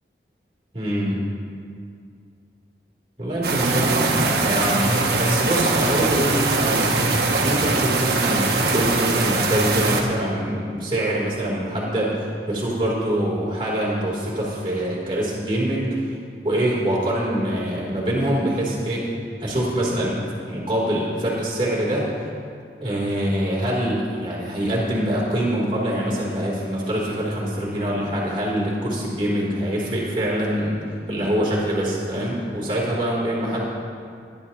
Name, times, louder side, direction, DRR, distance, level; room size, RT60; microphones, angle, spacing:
voice 1, 0.7-1.3 3.2-6.9 7.4-16.0 16.4-19.1 19.4-22.1 22.8-33.7, right 1 dB, 30° right, -6 dB, 3.2 m, -24 dB
sound 1, 3.4-10.0, right 3 dB, 60° right, 1.3 m, -21 dB
18.0 x 11.0 x 2.9 m, 2.2 s
head